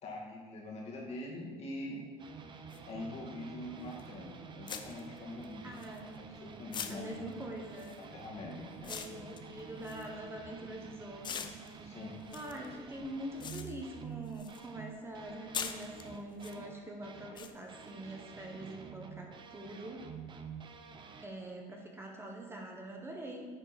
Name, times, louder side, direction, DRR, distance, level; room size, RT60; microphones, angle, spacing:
voice 1, 0.0-2.0 2.9-5.8 6.2-7.3 8.1-8.9 11.8-12.2, left 1 dB, 50° left, -2 dB, 2.2 m, -44 dB
sound 1, 2.2-17.4 17.7-21.3, right 6 dB, 35° right, 0.8 m, -49 dB
sound 2, 2.7-2.8 4.0-4.1 4.7-6.3 6.7-10.8 11.2-14.7 15.0-16.6 17.4-17.5, left 6 dB, 30° left, 0.6 m, -44 dB
voice 2, 5.6-6.1 6.9-7.9 8.9-11.5 12.3-20.1 21.2-23.5, right 1 dB, 15° right, 1 dB, 1.2 m, -44 dB
10.0 x 4.5 x 4.3 m, 1.5 s
supercardioid pair, 100°, 15 cm